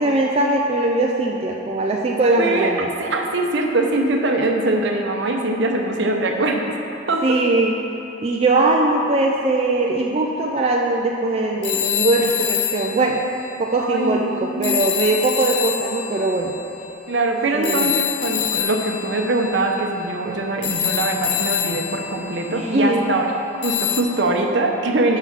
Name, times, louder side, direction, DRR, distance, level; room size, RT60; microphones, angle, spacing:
voice 1, 0.0-2.9 7.2-7.8 8.2-13.2 13.6-16.5 17.5-17.9 22.5-23.0, right 2 dB, 30° right, -1 dB, 0.4 m, -20 dB
voice 2, 2.4-6.6 7.1-7.4 12.2-12.3 12.9-13.1 13.8-14.8 17.1-23.3 23.6-25.2, right 2 dB, 65° right, 2 dB, 0.7 m, -22 dB
sound 1, 11.6-14.1 14.6-23.1 23.6-24.0, left 11 dB, 60° left, 0.5 m, -26 dB
5.8 x 5.6 x 6.1 m, 2.8 s
head